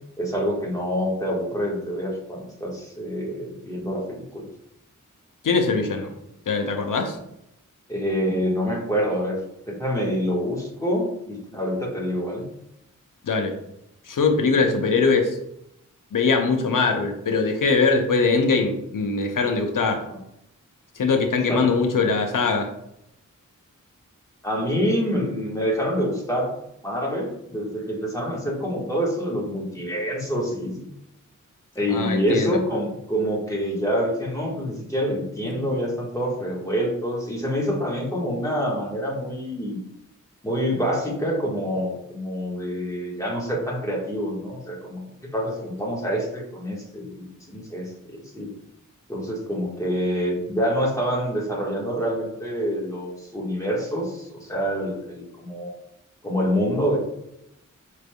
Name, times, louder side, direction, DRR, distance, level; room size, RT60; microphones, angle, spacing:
voice 1, 0.2-4.5 7.9-9.4 9.7-12.4 20.1-20.2 21.5-21.7 24.4-26.5 26.8-30.9 31.7-39.8 40.4-48.5 49.1-55.8 56.2-57.0, equal, 10° left, -3 dB, 1.5 m, -26 dB
voice 2, 5.4-6.1 6.5-7.2 13.3-13.5 14.1-15.4 16.1-20.0 21.0-22.7 31.9-32.6 35.4-35.7, left 4 dB, 80° left, 5 dB, 0.7 m, -22 dB
4.9 x 3.3 x 2.3 m, 0.81 s
cardioid pair, 50°, 32 cm